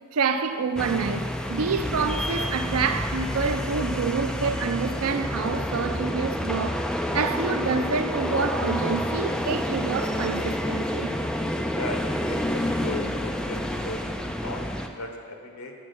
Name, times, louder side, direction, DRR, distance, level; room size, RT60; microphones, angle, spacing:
voice 1, 0.1-11.1, right 5 dB, 70° right, 0.5 m, -27 dB
sound 1, 0.8-14.9, equal, 5° left, 0.3 m, -29 dB
voice 2, 11.7-15.7, left 2 dB, 90° left, 1.1 m, -37 dB
8.4 x 5.3 x 6.4 m
head